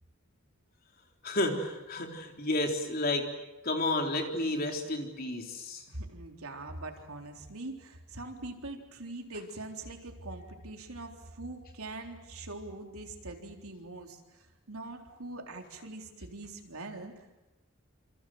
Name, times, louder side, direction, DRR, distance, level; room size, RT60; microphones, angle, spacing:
voice 1, 1.2-3.3 3.6-5.8, left 2 dB, 45° left, 3 dB, 3.9 m, -31 dB
voice 2, 5.9-17.3, right 2 dB, 85° right, 3 dB, 3.8 m, -43 dB
27.5 x 27.0 x 7.9 m, 1.0 s
head